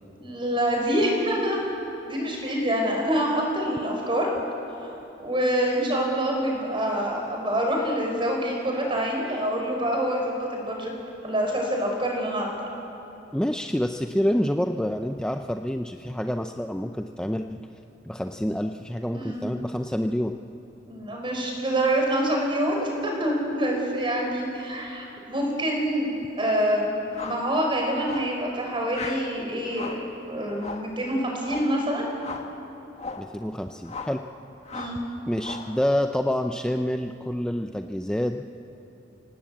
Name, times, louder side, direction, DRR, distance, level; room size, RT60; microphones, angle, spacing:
voice 1, 0.2-1.6 2.1-4.3 4.8-10.9 11.2-12.5 19.1-19.5 20.9-26.1 26.4-30.0 30.3-32.1 34.7-35.0, right 1 dB, 30° right, 0 dB, 5.3 m, -26 dB
voice 2, 13.3-17.6 18.1-20.4 33.2-34.2 35.3-38.5, equal, 5° left, 5 dB, 0.5 m, -27 dB
sound 1, 27.1-27.5 28.0-28.4 28.9-29.3 29.7-30.1 30.6-30.9 31.4-31.8 32.2-32.5 32.9-33.3 33.8-34.2 34.7-35.0 35.4-35.8, left 4 dB, 35° left, 1.7 m, -37 dB
27.5 x 18.0 x 8.6 m, 2.9 s
head